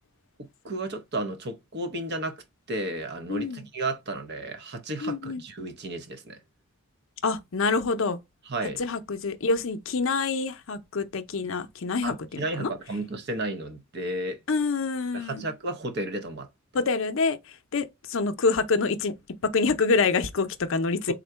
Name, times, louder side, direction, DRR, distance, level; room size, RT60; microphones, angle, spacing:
voice 1, 0.4-6.4 8.5-8.8 12.0-14.4 15.1-16.5, right 2 dB, 50° right, 0.8 m, -33 dB
voice 2, 3.3-3.6 5.0-5.4 7.2-8.2 8.8-12.7 14.5-15.4 16.7-19.1 19.4-21.1, left 4 dB, 65° left, 0.5 m, -26 dB
3.7 x 2.1 x 4.4 m
head